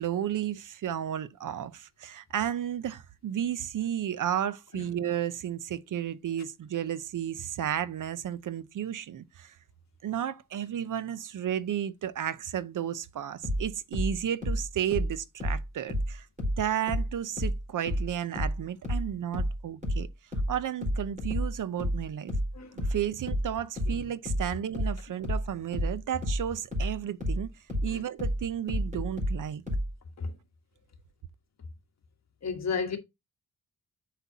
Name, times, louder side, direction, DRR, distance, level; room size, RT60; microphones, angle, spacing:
voice 1, 0.0-9.5 10.0-16.3 16.6-20.1 20.5-22.3 22.8-27.5 27.8-29.6, right 10 dB, 60° right, 0.7 m, -33 dB
sound 1, 13.4-16.6 16.9-29.9, equal, 20° right, 4.4 m, -30 dB
voice 2, 32.4-33.0, left 5 dB, 50° left, 1.7 m, -33 dB
8.3 x 5.7 x 2.8 m
cardioid pair, 105°, 35 cm